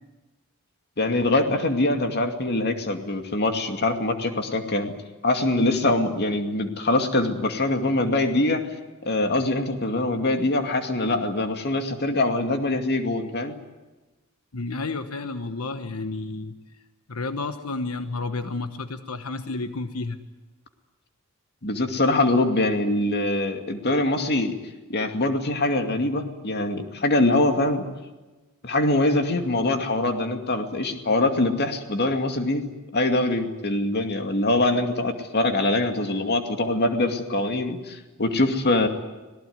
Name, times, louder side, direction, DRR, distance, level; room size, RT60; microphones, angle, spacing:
voice 1, 1.0-4.9 5.2-8.6 9.0-13.5 21.6-24.5 24.9-27.8 28.6-32.6 32.9-38.9, left 2 dB, 50° left, 6 dB, 2.4 m, -23 dB
voice 2, 14.5-16.5 17.1-20.2, left 3 dB, 90° left, 9 dB, 1.2 m, -31 dB
26.0 x 18.5 x 9.5 m, 1.2 s
head